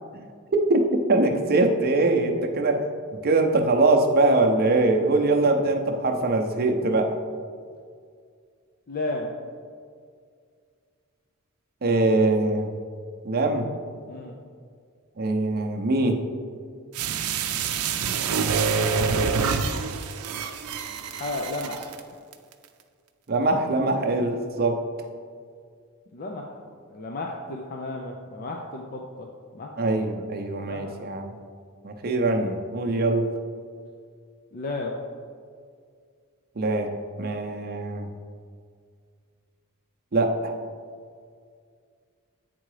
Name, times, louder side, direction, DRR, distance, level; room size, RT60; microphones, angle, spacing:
voice 1, 1.1-2.8 3.2-7.2 11.8-12.7 13.2-13.7 15.2-16.2 23.3-24.8 29.8-31.3 31.8-33.3 36.6-38.1 40.1-40.5, right 2 dB, 45° right, 3 dB, 0.7 m, -22 dB
voice 2, 8.9-9.3 14.1-14.4 21.1-22.0 26.1-26.6 26.9-29.3 29.5-29.7 30.7-31.0 34.5-34.9, left 2 dB, 40° left, 1 dB, 0.5 m, -33 dB
sound 1, 16.9-22.0 22.3-22.4, right 5 dB, 85° right, 0.5 m, -26 dB
8.6 x 3.8 x 4.8 m, 2.1 s
head